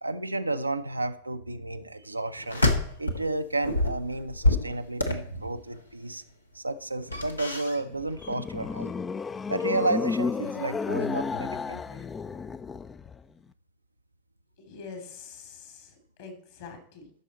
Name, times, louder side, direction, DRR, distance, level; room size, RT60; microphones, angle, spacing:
voice 1, 0.0-2.6 3.0-6.2 6.5-8.9 9.5-12.0, right 2 dB, 85° right, 9 dB, 0.5 m, -32 dB
sound 1, 2.4-3.3 3.6-5.8 7.0-8.0 8.2-8.4, left 1 dB, 85° left, 1.1 m, -27 dB
sound 2, 7.9-13.2, left 5 dB, 20° left, 0.3 m, -32 dB
voice 2, 14.6-17.1, left 5 dB, 55° left, 6 dB, 2.7 m, -45 dB
13.5 x 6.3 x 4.1 m, 0.62 s
figure-of-eight pair, 90°, 0 cm